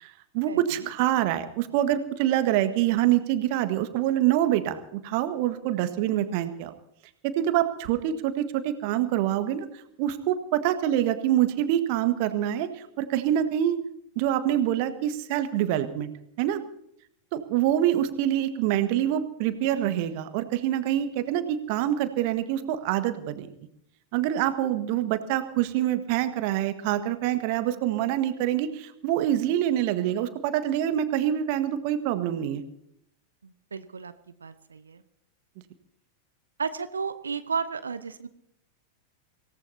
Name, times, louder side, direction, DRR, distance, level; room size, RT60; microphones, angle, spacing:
voice 1, 0.0-6.7 7.2-9.7 10.0-13.8 14.1-16.1 16.4-16.6 17.3-23.5 24.1-32.6, right 12 dB, 45° right, 10 dB, 1.5 m, -26 dB
voice 2, 33.4-34.1 34.4-35.0 36.6-38.3, right 5 dB, 75° right, 12 dB, 0.8 m, -33 dB
25.5 x 18.0 x 2.8 m, 0.74 s
figure-of-eight pair, 90°, 0 cm